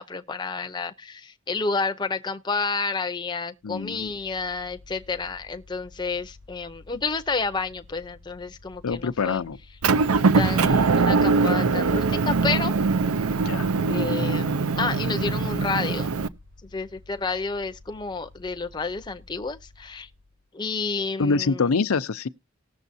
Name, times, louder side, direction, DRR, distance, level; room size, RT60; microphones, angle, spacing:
voice 1, 0.0-9.4 10.3-12.8 13.9-16.1 16.6-20.1 20.5-21.8, left 4 dB, 20° left, 0.6 m, -30 dB
voice 2, 3.6-4.1 8.8-9.6 13.5-13.7 21.2-22.3, left 4 dB, 85° left, 0.6 m, -25 dB
Mechanical fan, 3.6-20.5, left 2 dB, 65° right, 3.2 m, -51 dB
Motor vehicle (road) / Engine, 9.8-16.3, right 4 dB, 85° right, 0.6 m, -22 dB
18.5 x 7.0 x 2.7 m
head